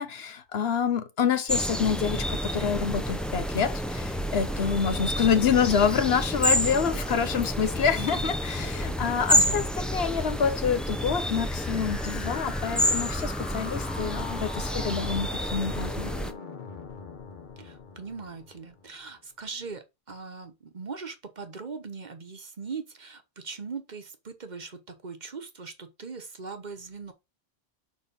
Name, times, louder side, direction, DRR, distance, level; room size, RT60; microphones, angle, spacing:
voice 1, 0.0-16.1, left 7 dB, 70° left, 1.1 m, -27 dB
sound 1, 1.5-16.3, equal, ahead, 0.5 m, -29 dB
voice 2, 9.3-9.7 17.6-27.1, right 5 dB, 45° right, 1.0 m, -40 dB
sound 2, 11.2-19.1, left 4 dB, 50° left, 1.1 m, -42 dB
5.3 x 4.3 x 5.2 m
omnidirectional pair, 1.1 m